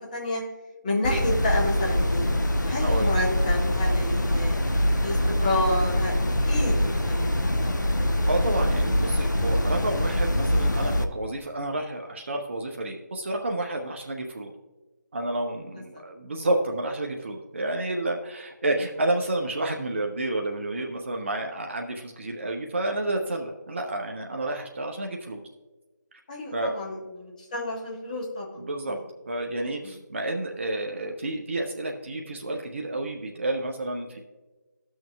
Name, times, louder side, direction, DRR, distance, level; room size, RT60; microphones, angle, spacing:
voice 1, 0.1-0.4 0.8-2.3 2.6-4.6 5.0-6.1 6.4-7.3 26.3-28.6 28.9-29.0, left 1 dB, 25° left, -2 dB, 1.4 m, -29 dB
sound 1, 1.0-11.0, left 1 dB, 80° left, 0.7 m, -24 dB
voice 2, 8.3-14.5 15.1-25.4 26.5-26.7 28.6-29.0 29.3-34.2, right 2 dB, 40° right, 2 dB, 0.5 m, -30 dB
13.0 x 6.3 x 2.3 m, 1.2 s
figure-of-eight pair, 155°, 10 cm